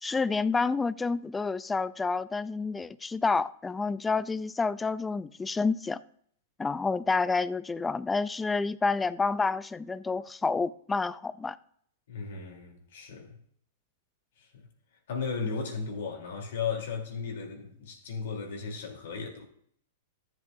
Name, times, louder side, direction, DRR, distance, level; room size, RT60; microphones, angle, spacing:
voice 1, 0.0-6.0 6.6-11.6, left 4 dB, 10° left, 0.3 m, -29 dB
voice 2, 12.1-13.4 14.4-14.6 15.1-19.5, left 5 dB, 75° left, 3.1 m, -35 dB
13.5 x 7.8 x 2.6 m
hypercardioid pair, 135°, 0 cm